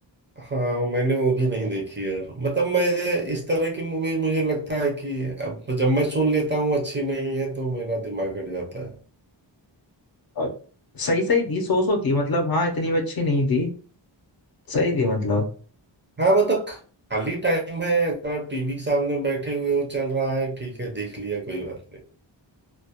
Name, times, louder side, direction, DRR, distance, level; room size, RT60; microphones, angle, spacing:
voice 1, 0.4-8.9 16.2-16.8 17.1-22.0, right 2 dB, 25° right, -1 dB, 0.4 m, -25 dB
voice 2, 10.9-13.7 14.7-15.5, left 2 dB, 50° left, 3 dB, 0.5 m, -23 dB
2.2 x 2.1 x 2.7 m, 0.40 s
wide cardioid pair, 170°, 46 cm